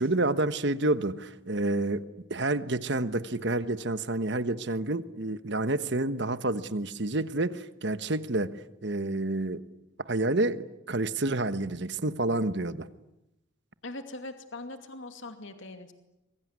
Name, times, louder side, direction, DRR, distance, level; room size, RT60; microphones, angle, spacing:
voice 1, 0.0-2.0 2.3-8.5 8.8-9.6 10.1-12.9, right 2 dB, 55° right, 13 dB, 1.2 m, -29 dB
voice 2, 13.8-15.9, left 2 dB, 70° left, 7 dB, 2.5 m, -41 dB
26.0 x 23.0 x 9.7 m, 0.90 s
head